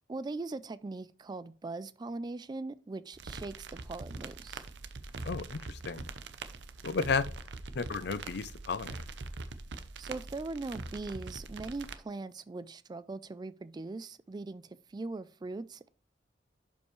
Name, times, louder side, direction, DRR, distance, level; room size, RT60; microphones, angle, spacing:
voice 1, 0.1-4.6 10.0-15.9, right 3 dB, 25° right, 0.3 m, -40 dB
sound 1, 3.1-12.0, right 3 dB, 70° right, 0.7 m, -43 dB
voice 2, 5.2-6.0 6.8-7.2 7.8-9.0, left 4 dB, 65° left, 0.5 m, -33 dB
11.0 x 5.4 x 3.1 m
head